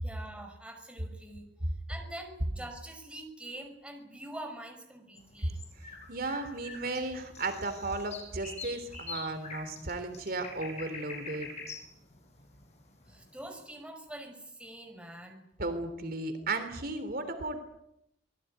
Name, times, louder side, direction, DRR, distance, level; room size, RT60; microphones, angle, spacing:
voice 1, 0.0-1.5 1.9-5.6 13.1-15.4, right 1 dB, 5° right, 4 dB, 5.6 m, -45 dB
sound 1, 5.2-13.4, left 3 dB, 40° left, 6.9 m, -45 dB
voice 2, 6.1-11.5 15.6-17.6, right 2 dB, 55° right, 9 dB, 3.4 m, -35 dB
26.0 x 20.0 x 9.4 m, 0.82 s
head